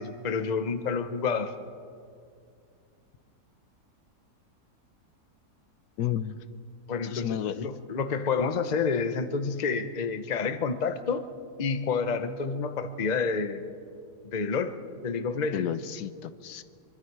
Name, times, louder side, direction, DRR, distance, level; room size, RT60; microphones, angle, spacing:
voice 1, 0.0-1.5 6.9-11.3 11.6-13.6 14.3-14.7 15.0-15.7, left 5 dB, 35° left, 9 dB, 0.8 m, -29 dB
voice 2, 6.0-6.4 7.1-7.7 15.5-16.6, left 10 dB, 75° left, 13 dB, 1.2 m, -32 dB
24.5 x 23.5 x 4.7 m, 2.3 s
omnidirectional pair, 1.7 m